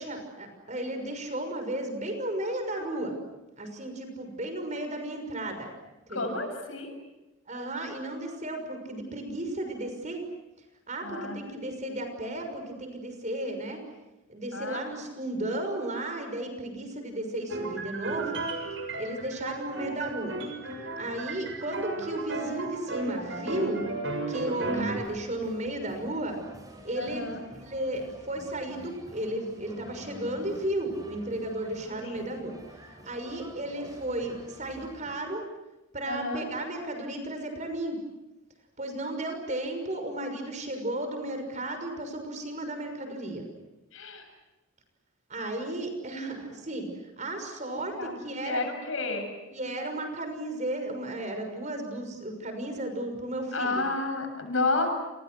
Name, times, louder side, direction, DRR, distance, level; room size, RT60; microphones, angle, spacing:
voice 1, 0.0-3.1 3.6-5.7 6.1-6.3 7.5-10.2 10.9-13.8 14.3-18.4 19.0-20.4 20.8-23.8 24.3-26.4 26.8-27.3 27.6-32.5 32.8-35.4 35.9-38.0 38.8-43.4 45.3-48.6 49.5-53.8, right 1 dB, 35° right, 6 dB, 6.1 m, -34 dB
voice 2, 6.1-6.9 11.0-11.5 14.5-14.9 22.0-22.1 27.0-27.4 32.0-32.2 36.1-36.4 43.9-44.3 47.7-49.3 53.5-54.9, left 3 dB, 75° left, 6 dB, 7.2 m, -31 dB
sound 1, 17.5-25.0, right 2 dB, 65° right, 7.1 m, -34 dB
sound 2, 25.0-35.1, equal, 20° right, 6.2 m, -49 dB
30.0 x 29.0 x 6.3 m, 1.0 s
head